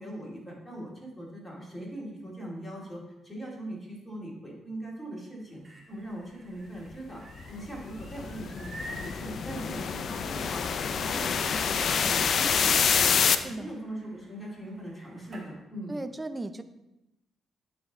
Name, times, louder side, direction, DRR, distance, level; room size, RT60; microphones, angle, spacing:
voice 1, 0.0-5.6 5.9-7.2 7.5-16.0, right 1 dB, 5° left, -4 dB, 2.4 m, -40 dB
sound 1, 5.4-15.5, right 1 dB, 35° right, 1.4 m, -50 dB
sound 2, 7.4-13.4, left 6 dB, 55° left, 0.4 m, -27 dB
voice 2, 13.4-13.8 15.9-16.6, right 2 dB, 20° right, 10 dB, 0.5 m, -36 dB
9.3 x 3.4 x 3.6 m, 0.95 s
cardioid pair, 90°, 0 cm